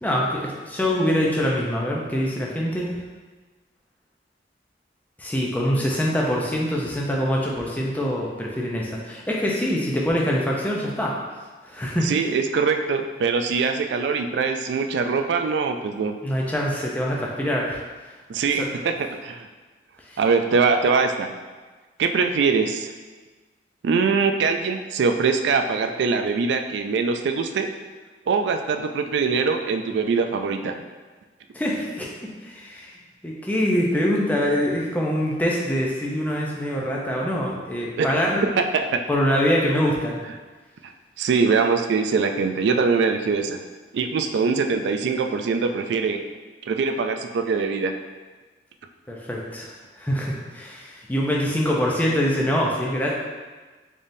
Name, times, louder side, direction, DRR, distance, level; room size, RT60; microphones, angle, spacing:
voice 1, 0.0-2.9 5.2-11.1 11.6-12.1 16.2-17.8 18.6-18.7 20.1-20.2 31.5-32.1 32.4-32.9 33.2-38.5 39.1-40.2 49.1-53.1, equal, 10° left, -3 dB, 0.4 m, -24 dB
voice 2, 12.0-16.1 18.3-19.5 20.2-21.3 22.0-22.9 23.8-27.7 28.3-30.7 37.8-38.2 38.6-39.0 40.8-40.9 41.2-43.6 43.9-46.2 46.7-47.9, right 5 dB, 75° right, 6 dB, 0.3 m, -23 dB
3.9 x 3.5 x 2.6 m, 1.3 s
head